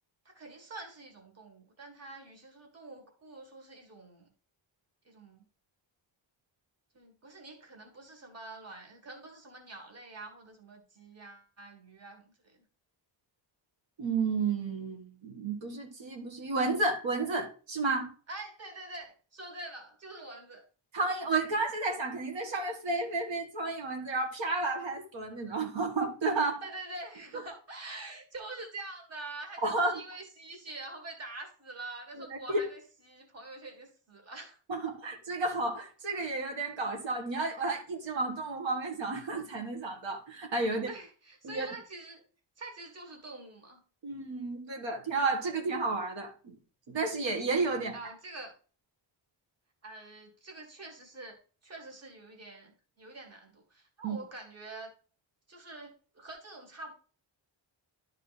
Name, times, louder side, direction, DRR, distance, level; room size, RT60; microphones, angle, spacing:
voice 1, 0.2-4.3 5.0-5.4 6.9-12.6 18.3-20.6 26.6-34.9 40.7-42.2 42.6-43.8 47.9-48.5 49.8-54.9 55.5-56.9, right 2 dB, 35° right, 1.7 m, -46 dB
voice 2, 14.0-18.1 20.9-26.7 29.6-30.0 32.2-32.6 34.7-40.9 41.4-41.7 44.0-46.5 46.9-47.9 54.0-54.2, right 3 dB, 75° right, 1.6 m, -32 dB
11.5 x 3.8 x 4.0 m
wide cardioid pair, 155°, 45 cm